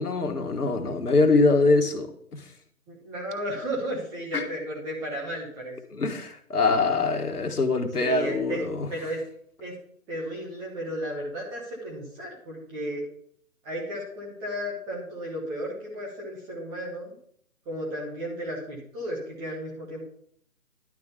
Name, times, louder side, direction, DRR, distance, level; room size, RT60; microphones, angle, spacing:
voice 1, 0.0-2.4 4.3-4.4 5.9-8.9, left 3 dB, 85° left, 5 dB, 1.7 m, -23 dB
voice 2, 2.9-5.8 8.0-8.6 8.9-9.2 9.6-9.7 10.1-13.0 13.6-17.1 17.7-20.0, equal, 10° right, -3 dB, 0.9 m, -34 dB
11.0 x 3.8 x 6.6 m, 0.63 s
figure-of-eight pair, 150°, 44 cm